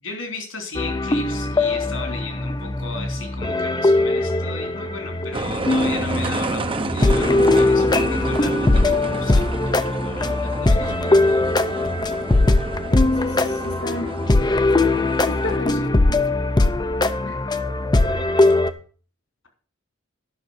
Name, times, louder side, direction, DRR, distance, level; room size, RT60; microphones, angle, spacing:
voice 1, 0.0-11.5 14.7-15.9 16.6-16.9 18.4-18.5, left 3 dB, 75° left, 4 dB, 3.4 m, -37 dB
sound 1, 0.7-18.7, left 2 dB, 20° left, 0.6 m, -20 dB
sound 2, 5.3-15.6, right 2 dB, 25° right, 0.8 m, -30 dB
voice 2, 12.9-14.1 15.3-16.2 17.2-17.4, left 2 dB, 55° left, 5 dB, 0.9 m, -33 dB
10.5 x 6.3 x 6.3 m, 0.42 s
head